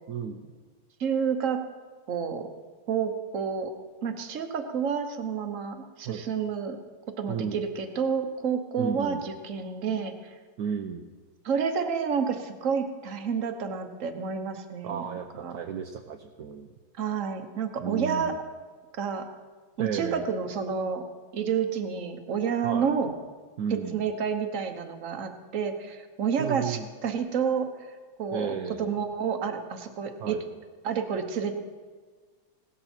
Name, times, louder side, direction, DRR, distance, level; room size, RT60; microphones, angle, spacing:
voice 1, 0.1-0.5 6.0-6.2 7.3-7.6 8.8-9.2 10.6-11.1 14.8-16.7 17.8-18.4 19.8-20.3 22.6-22.9 23.6-24.0 26.4-26.9 28.3-29.0 30.2-30.4, right 7 dB, 65° right, 4 dB, 1.1 m, -33 dB
voice 2, 1.0-1.6 2.1-2.5 2.9-3.7 4.0-6.8 7.2-10.3 11.4-15.6 17.0-18.3 19.0-19.3 19.8-21.0 21.3-23.1 23.9-27.9 28.2-30.4 30.8-31.6, right 6 dB, 45° right, 7 dB, 1.2 m, -29 dB
17.5 x 13.0 x 4.4 m, 1.4 s
omnidirectional pair, 2.2 m